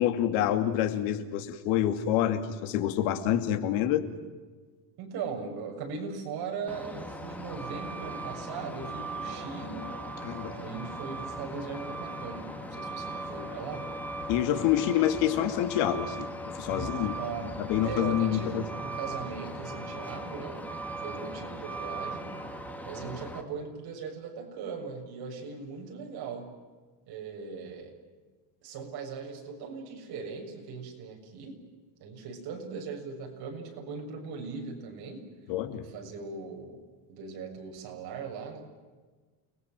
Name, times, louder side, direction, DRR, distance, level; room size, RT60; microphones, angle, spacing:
voice 1, 0.0-4.0 10.2-10.5 14.3-16.3 16.6-17.2 17.6-18.6 35.5-35.9, left 11 dB, 90° left, 8 dB, 2.7 m, -27 dB
voice 2, 5.0-9.9 10.6-13.9 16.7-17.5 17.8-20.7 21.0-22.3 22.8-26.5 27.1-28.0 28.6-31.6 32.0-35.3 35.7-38.6, right 5 dB, 55° right, 2 dB, 7.0 m, -39 dB
Truck, 6.7-23.4, right 1 dB, 5° left, 2.0 m, -38 dB
29.5 x 21.0 x 7.7 m, 1.3 s
cardioid pair, 165°, 45 cm